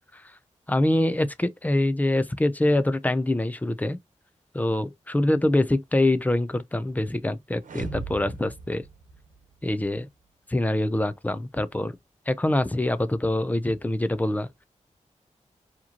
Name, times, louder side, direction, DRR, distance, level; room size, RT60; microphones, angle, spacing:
voice 1, 0.7-4.0 4.5-8.8 9.6-10.1 10.5-12.0 12.3-14.5, left 1 dB, 10° left, 0.5 m, -25 dB
sound 1, 7.6-9.7, right 3 dB, 85° right, 1.0 m, -38 dB
4.7 x 3.0 x 2.8 m
wide cardioid pair, 90°, 13 cm